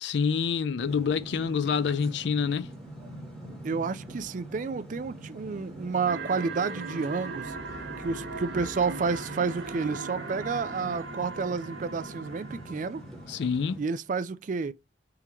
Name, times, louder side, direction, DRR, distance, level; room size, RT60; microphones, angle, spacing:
voice 1, 0.0-2.7 13.3-13.8, left 6 dB, 65° left, 0.4 m, -27 dB
sound 1, 0.8-13.8, right 1 dB, 5° left, 1.5 m, -43 dB
voice 2, 3.6-7.6 8.0-13.0 13.8-14.7, right 5 dB, 45° right, 0.4 m, -30 dB
sound 2, 6.1-13.3, right 3 dB, 80° right, 1.1 m, -39 dB
3.8 x 2.9 x 4.3 m
head